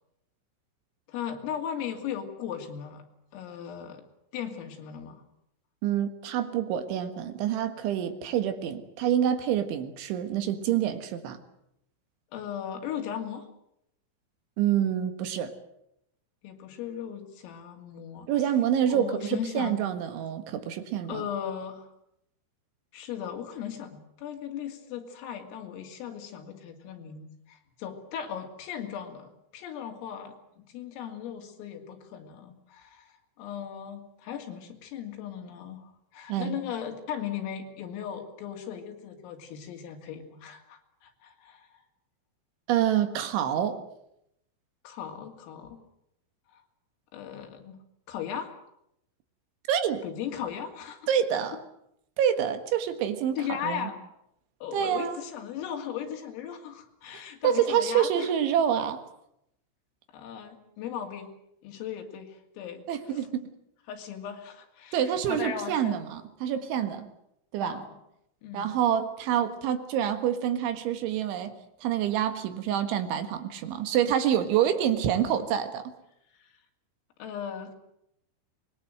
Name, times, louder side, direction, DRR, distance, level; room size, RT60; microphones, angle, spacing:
voice 1, 1.1-3.0 3.3-4.0 4.3-5.2 12.3-13.5 16.4-18.3 18.9-19.8 21.1-21.9 22.9-41.8 44.9-45.8 46.5-46.6 47.1-47.8 48.1-48.5 50.0-51.1 53.4-54.0 54.6-58.3 60.1-61.3 61.6-62.8 63.1-63.3 63.9-66.1 67.6-67.9 68.4-68.8 76.4-76.5 77.2-77.7, left 8 dB, 90° left, 4 dB, 5.3 m, -37 dB
voice 2, 5.8-11.4 14.6-15.5 18.3-21.2 36.3-36.6 42.7-43.8 49.7-50.0 51.1-51.6 52.2-53.4 53.6-53.9 54.7-55.2 57.4-59.0 62.9-63.5 64.9-67.1 67.5-67.8 68.5-71.6 71.8-75.9, right 9 dB, 70° right, 9 dB, 3.8 m, -27 dB
25.0 x 21.0 x 7.8 m, 0.78 s
omnidirectional pair, 5.8 m